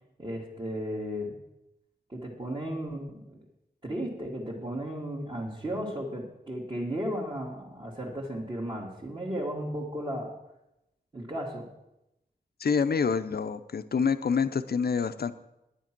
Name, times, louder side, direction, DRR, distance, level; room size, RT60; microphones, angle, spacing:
voice 1, 0.2-1.4 2.1-3.4 3.8-10.3 11.1-11.7, equal, 30° right, -5 dB, 1.9 m, -35 dB
voice 2, 12.6-15.3, left 6 dB, 75° left, 11 dB, 0.6 m, -27 dB
9.9 x 9.9 x 6.0 m, 0.90 s
wide cardioid pair, 100°, 16 cm